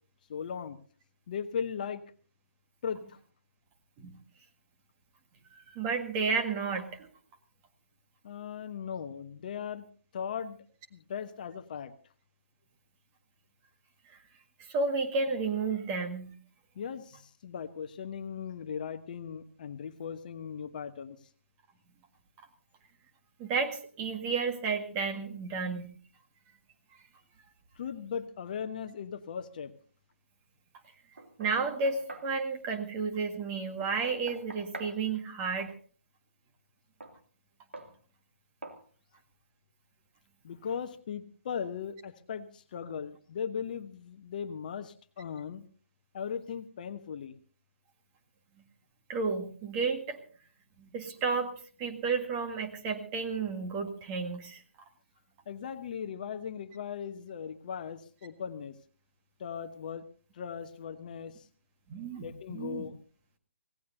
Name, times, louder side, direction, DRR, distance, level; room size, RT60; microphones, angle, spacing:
voice 1, 0.3-0.8 1.3-2.0 2.8-3.2 8.2-9.9 10.1-10.6 10.9-11.9 16.7-21.2 27.8-29.7 40.4-45.6 46.1-47.4 55.5-58.8 59.4-60.0 60.3-61.5 62.2-63.0, left 7 dB, 40° left, 9 dB, 1.0 m, -38 dB
voice 2, 5.7-7.1 14.6-16.4 23.4-25.9 31.4-35.7 49.1-50.2 50.8-51.5 51.8-54.6 61.9-62.8, right 4 dB, 20° right, 5 dB, 1.7 m, -32 dB
Knock, 31.2-32.3 33.8-35.0 37.0-37.2 37.7-37.9 38.6-38.8, right 2 dB, 65° right, 2.6 m, -45 dB
25.0 x 17.0 x 2.7 m, 0.41 s
figure-of-eight pair, 135°, 7 cm